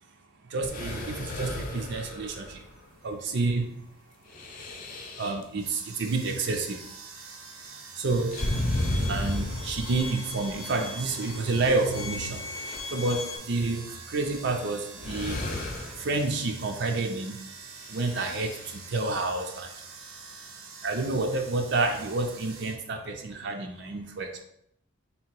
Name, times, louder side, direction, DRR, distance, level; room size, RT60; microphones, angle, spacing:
voice 1, 0.5-2.4 3.0-3.7 5.2-6.8 8.0-8.3 9.1-12.4 12.9-13.8 14.1-15.4 16.0-17.3 17.9-18.5 18.9-19.7 20.8-24.4, right 3 dB, 55° right, 3 dB, 0.4 m, -29 dB
sound 1, 0.6-2.8 4.3-5.4 8.3-10.3 11.5-11.6 12.2-12.8 14.4-14.5 15.0-16.1 17.8-18.8, left 1 dB, 40° left, 0.6 m, -33 dB
voice 2, 2.6-3.0 4.1-5.2 7.6-7.8 23.2-23.3, left 1 dB, ahead, -1 dB, 0.7 m, -69 dB
sound 2, 5.5-22.8, right 5 dB, 85° right, 0.7 m, -46 dB
Bowed string instrument, 8.4-13.4, left 4 dB, 85° left, 0.6 m, -40 dB
3.3 x 2.8 x 4.4 m, 0.74 s
head